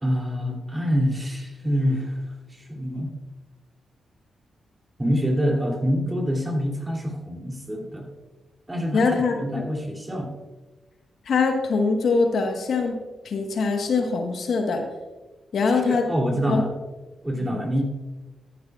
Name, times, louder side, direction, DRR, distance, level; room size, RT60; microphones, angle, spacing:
voice 1, 0.0-2.2 2.5-3.1 5.0-8.1 8.7-10.3 15.7-16.7 17.2-17.8, equal, 15° right, 0 dB, 2.8 m, -26 dB
voice 2, 8.9-9.3 11.3-13.0 13.2-14.8 15.5-16.1 16.5-16.6 17.4-17.6, left 4 dB, 70° left, 4 dB, 1.3 m, -23 dB
13.0 x 11.0 x 2.4 m, 1.2 s
cardioid pair, 60°, 0 cm